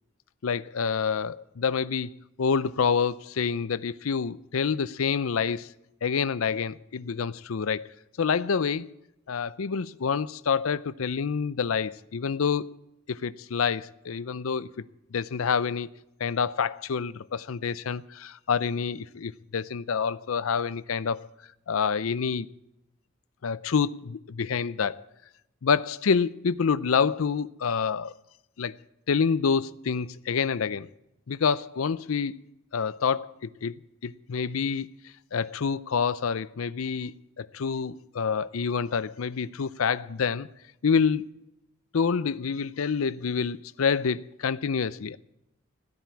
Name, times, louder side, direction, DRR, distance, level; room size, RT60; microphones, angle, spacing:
voice 1, 0.4-5.7 6.0-7.9 8.2-8.9 9.3-12.7 13.1-14.7 15.1-15.9 16.2-21.3 21.7-22.5 23.4-25.0 25.6-28.1 28.6-28.7 29.1-30.9 31.3-32.4 32.7-33.7 34.0-34.9 35.3-40.5 40.8-41.3 41.9-45.2, left 6 dB, 85° left, 0.5 m, -27 dB
16.0 x 9.4 x 8.3 m
head